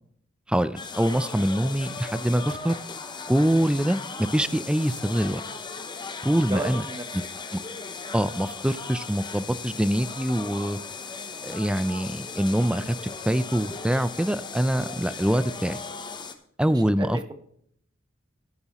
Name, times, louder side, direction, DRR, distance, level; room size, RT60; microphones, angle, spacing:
voice 1, 0.5-2.8 3.3-5.4 6.2-6.8 8.1-10.8 11.4-13.0 13.3-15.8 16.6-17.3, right 1 dB, 5° right, 14 dB, 0.4 m, -24 dB
sound 1, 0.8-16.3, left 4 dB, 20° left, 0.8 m, -37 dB
voice 2, 6.4-7.0 14.7-15.1 16.7-17.3, right 2 dB, 20° right, 7 dB, 1.0 m, -34 dB
13.5 x 9.7 x 3.0 m, 0.65 s
head